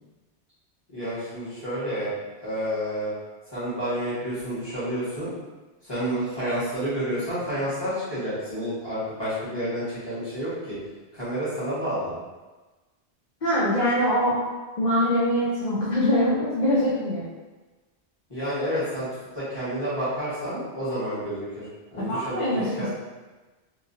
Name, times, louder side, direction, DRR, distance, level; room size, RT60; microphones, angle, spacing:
voice 1, 0.9-2.1 2.4-3.1 3.5-5.3 5.8-10.8 11.1-12.1 18.3-19.1 19.3-21.6 21.9-22.9, equal, 25° left, -13 dB, 1.4 m, -29 dB
voice 2, 13.4-14.4 14.8-17.2 22.0-22.9, equal, 50° left, -9 dB, 0.7 m, -23 dB
3.0 x 2.6 x 2.6 m, 1.2 s
omnidirectional pair, 1.1 m